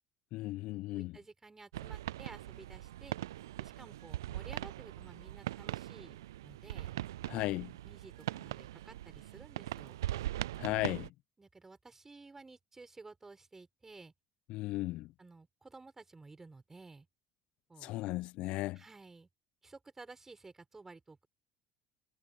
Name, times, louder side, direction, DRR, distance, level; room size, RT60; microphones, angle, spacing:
voice 1, 0.3-1.1 7.3-7.7 10.6-11.1 14.5-15.1 17.8-18.8, left 18 dB, 65° left, 0.9 m, -36 dB
voice 2, 0.9-3.2 3.6-7.0 7.8-10.0 11.4-14.1 15.2-17.1 17.7-17.9 18.7-19.3 19.6-21.3, right 3 dB, 20° right, 6.9 m, -54 dB
sound 1, 1.7-11.1, right 14 dB, 85° right, 0.3 m, -41 dB
hypercardioid pair, 65°, 2 cm